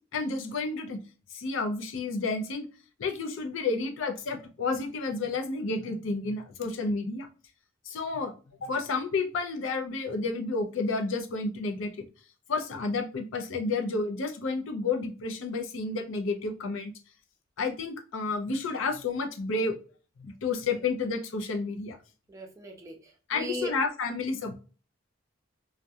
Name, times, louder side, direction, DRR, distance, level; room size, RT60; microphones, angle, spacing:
voice 1, 0.1-1.0 1.3-2.7 3.0-7.3 7.8-12.1 12.5-16.9 17.6-19.8 20.2-22.0 23.3-24.6, left 3 dB, 70° left, 5 dB, 0.5 m, -31 dB
voice 2, 22.3-23.7, equal, 15° right, 0 dB, 0.4 m, -38 dB
2.3 x 2.1 x 2.7 m, 0.35 s
head